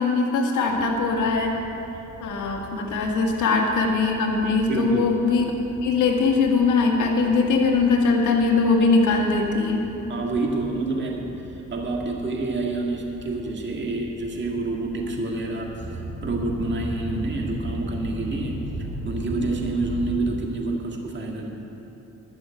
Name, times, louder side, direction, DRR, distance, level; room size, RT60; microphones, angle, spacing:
voice 1, 0.0-1.5 2.2-5.5 5.8-9.8, left 4 dB, 80° left, 0 dB, 1.9 m, -21 dB
sound 1, 0.7-20.3, right 1 dB, 60° right, 3.0 m, -38 dB
voice 2, 4.7-5.1 10.1-15.7 16.2-18.7 19.0-21.5, right 2 dB, 40° right, 0 dB, 1.8 m, -28 dB
12.0 x 6.4 x 9.1 m, 2.9 s
cardioid pair, 90°, 30 cm